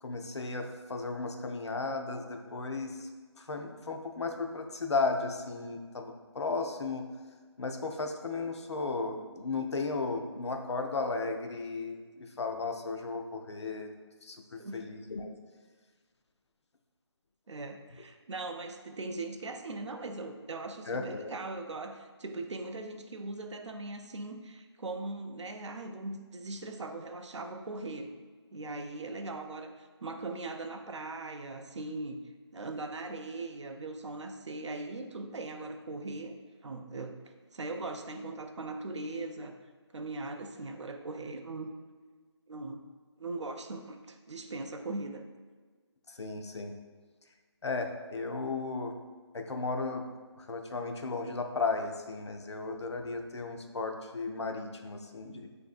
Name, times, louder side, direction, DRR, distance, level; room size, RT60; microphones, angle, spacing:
voice 1, 0.0-3.1 3.4-7.1 7.6-13.9 14.2-15.3 20.9-21.3 46.1-46.7 47.6-48.9 49.3-50.0 50.4-55.5, left 3 dB, 70° left, 4 dB, 0.5 m, -35 dB
voice 2, 17.5-28.1 28.5-32.2 32.5-36.4 36.6-37.2 37.5-39.6 39.9-41.7 42.5-42.8 43.2-45.3, right 2 dB, 80° right, 6 dB, 0.5 m, -40 dB
6.1 x 2.6 x 2.4 m, 1.4 s
figure-of-eight pair, 175°, 15 cm